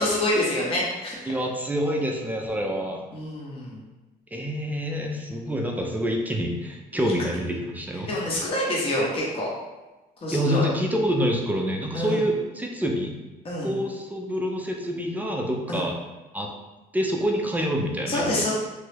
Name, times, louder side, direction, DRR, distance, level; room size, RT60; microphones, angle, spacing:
voice 1, 0.0-1.3 3.1-3.8 8.1-9.5 10.2-10.7 11.9-12.2 13.4-13.7 15.7-15.8 18.1-18.5, left 1 dB, 35° left, -5 dB, 0.8 m, -26 dB
voice 2, 1.3-3.0 4.3-8.1 10.3-13.2 13.6-16.0 16.3-16.5 16.9-18.4, equal, 10° right, 1 dB, 0.4 m, -27 dB
3.0 x 2.3 x 3.2 m, 1.1 s
cardioid pair, 110°, 17 cm